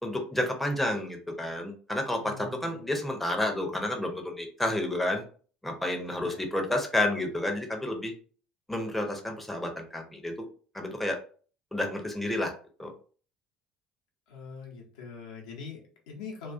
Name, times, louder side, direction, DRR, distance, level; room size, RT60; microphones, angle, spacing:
voice 1, 0.0-5.2 5.6-8.1 8.7-10.3 10.7-11.2 11.7-12.5 12.8-12.9, left 1 dB, 5° left, 2 dB, 0.6 m, -30 dB
voice 2, 2.0-2.9 6.2-6.4 14.3-16.5, left 5 dB, 70° left, 0 dB, 0.7 m, -43 dB
2.3 x 2.3 x 2.4 m, 0.41 s
figure-of-eight pair, 60°, 4 cm